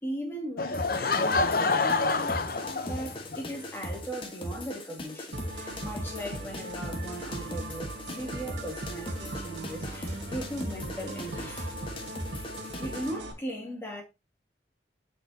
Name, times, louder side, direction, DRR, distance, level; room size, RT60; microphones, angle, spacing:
voice 1, 0.0-2.3 2.8-11.8 12.8-14.0, right 1 dB, 15° left, 2.4 m, -38 dB
Laughter / Crowd, 0.6-3.4, left 3 dB, 55° left, 0.8 m, -27 dB
sound 1, 0.7-13.1, left 1 dB, 30° left, 1.3 m, -39 dB
sound 2, 5.3-13.3, right 1 dB, 80° right, 1.4 m, -39 dB
6.7 x 5.5 x 2.8 m
head